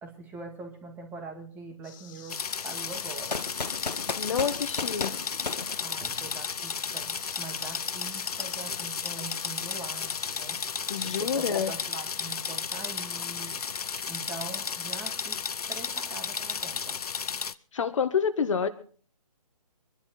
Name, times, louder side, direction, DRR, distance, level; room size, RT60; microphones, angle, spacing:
voice 1, 0.0-3.4 5.8-10.6 11.0-13.6 14.1-15.4 15.7-17.0, right 3 dB, 10° right, 3 dB, 2.2 m, -43 dB
sound 1, 1.8-11.2, left 8 dB, 30° left, 2.9 m, -50 dB
sound 2, 2.3-17.5, left 6 dB, 65° left, 0.9 m, -33 dB
sound 3, 3.3-6.5, left 4 dB, 85° left, 1.4 m, -35 dB
voice 2, 4.2-5.2 10.9-11.7 17.7-18.7, left 6 dB, 50° left, 8 dB, 1.8 m, -28 dB
24.0 x 11.5 x 4.4 m, 0.43 s
figure-of-eight pair, 150°, 21 cm